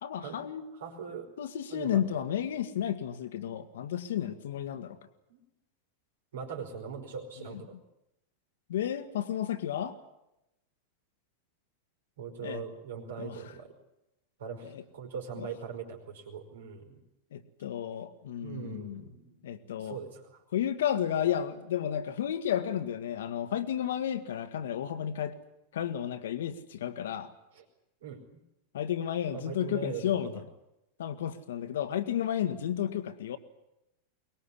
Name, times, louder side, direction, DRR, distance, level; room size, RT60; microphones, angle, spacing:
voice 1, 0.0-0.7 1.4-5.0 7.4-7.6 8.7-10.0 12.4-12.6 13.2-13.5 14.6-14.8 15.4-15.5 17.3-19.0 19.4-20.0 20.5-25.3 25.7-27.3 28.7-30.3 31.0-33.4, left 10 dB, 60° left, 9 dB, 1.7 m, -32 dB
voice 2, 0.8-1.3 1.7-2.2 5.3-5.4 6.3-7.7 12.2-13.7 14.4-17.0 18.4-19.4 19.8-20.4 27.5-27.6 28.0-28.2 29.3-30.4, right 6 dB, 60° right, 4 dB, 4.9 m, -41 dB
23.5 x 20.5 x 9.9 m, 0.88 s
figure-of-eight pair, 90°, 0 cm